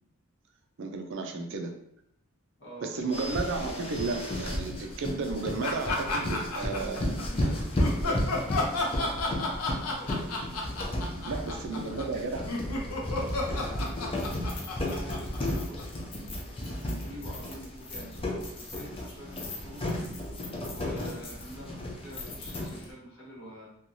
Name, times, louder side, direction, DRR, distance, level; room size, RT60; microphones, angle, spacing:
voice 1, 0.8-1.7 2.8-7.1 8.0-8.2 11.2-12.4, right 3 dB, 55° right, 4 dB, 0.4 m, -33 dB
voice 2, 2.6-3.4 6.6-10.8 11.3-11.5 11.8-12.5 13.1-15.8 16.6-19.9 20.7-23.6, equal, 55° left, -5 dB, 1.1 m, -47 dB
sound 1, 3.1-22.9, left 1 dB, 25° left, 0.4 m, -34 dB
sound 2, 5.6-7.2 7.8-16.0, left 2 dB, 80° left, 0.6 m, -32 dB
3.0 x 2.3 x 2.5 m, 0.73 s
head